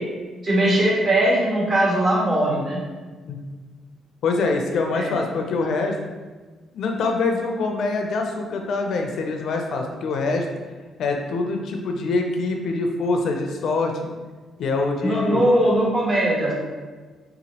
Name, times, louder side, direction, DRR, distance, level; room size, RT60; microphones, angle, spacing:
voice 1, 0.4-2.8 4.9-5.1 15.0-16.5, right 1 dB, 40° right, -5 dB, 1.4 m, -20 dB
voice 2, 4.2-6.0 6.7-10.5 11.0-14.1 14.6-15.4, left 3 dB, 70° left, 3 dB, 0.4 m, -24 dB
3.6 x 2.9 x 2.8 m, 1.4 s
cardioid pair, 90°, 0 cm